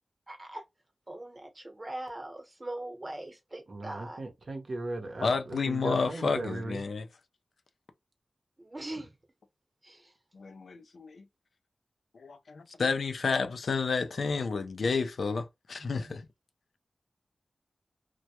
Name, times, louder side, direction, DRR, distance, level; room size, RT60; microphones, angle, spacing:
voice 1, 0.3-0.6 1.1-4.2 8.6-9.1 9.8-10.1 15.8-16.2, right 1 dB, 35° right, 0.9 m, -41 dB
voice 2, 3.7-6.8, right 2 dB, 65° right, 0.7 m, -37 dB
voice 3, 5.2-7.1 10.3-11.2 12.1-16.3, left 4 dB, 80° left, 0.3 m, -30 dB
2.1 x 2.1 x 2.8 m
cardioid pair, 50°, 0 cm